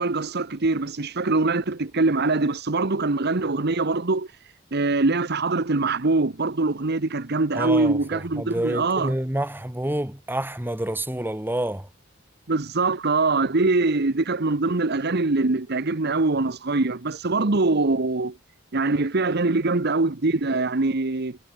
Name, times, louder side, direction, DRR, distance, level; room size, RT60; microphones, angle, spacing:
voice 1, 0.0-4.3 4.7-9.1 12.5-18.4 18.7-21.4, right 3 dB, 55° right, 1.1 m, -23 dB
voice 2, 7.5-11.9, right 1 dB, 10° right, 1.3 m, -28 dB
head